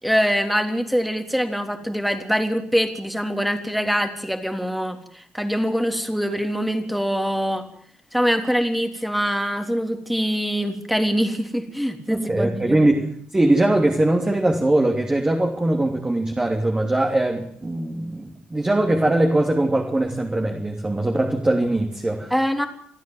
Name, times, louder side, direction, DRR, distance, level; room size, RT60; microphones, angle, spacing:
voice 1, 0.0-7.7 8.1-12.8 22.3-22.7, equal, ahead, 6 dB, 3.4 m, -24 dB
voice 2, 12.1-22.3, right 1 dB, 20° right, 2 dB, 3.2 m, -21 dB
28.0 x 9.5 x 9.7 m, 0.65 s
supercardioid pair, 60°, 4 cm